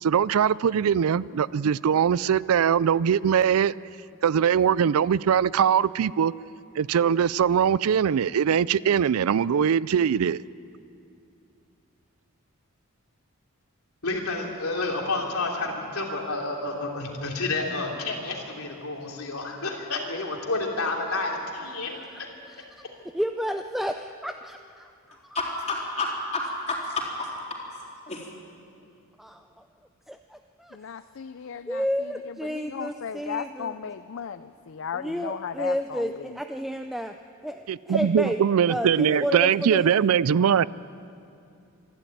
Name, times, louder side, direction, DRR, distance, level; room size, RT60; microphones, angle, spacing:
voice 1, 0.0-3.7 4.2-6.3 6.8-10.4 37.7-40.7, right 8 dB, 80° right, 20 dB, 0.4 m, -21 dB
voice 2, 14.0-21.9, left 3 dB, 80° left, 0 dB, 3.1 m, -30 dB
voice 3, 21.7-22.2 22.5-25.5 25.9-26.0 29.2-29.7 30.1-30.8 31.7-33.8 34.9-37.2 37.4-38.4 38.7-39.9, equal, ahead, 6 dB, 0.4 m, -32 dB
voice 4, 25.3-27.3 28.1-28.3, left 2 dB, 30° left, -2 dB, 3.6 m, -30 dB
voice 5, 30.7-31.8 32.5-36.4, left 7 dB, 60° left, 12 dB, 0.5 m, -36 dB
26.0 x 11.5 x 9.2 m, 2.6 s
head